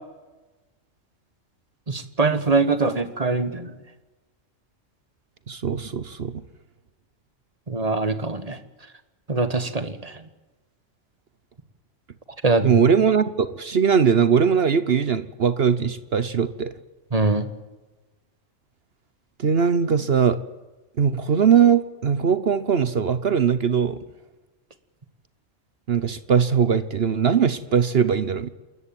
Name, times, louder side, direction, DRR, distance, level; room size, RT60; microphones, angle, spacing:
voice 1, 1.9-3.7 7.7-8.6 9.3-10.1 12.4-12.8 17.1-17.5, right 3 dB, 30° right, 11 dB, 1.5 m, -23 dB
voice 2, 5.5-6.4 12.6-16.7 19.4-20.4 21.0-24.0 25.9-28.5, right 7 dB, 50° right, 14 dB, 1.1 m, -20 dB
28.0 x 14.0 x 9.1 m, 1.2 s
omnidirectional pair, 1.4 m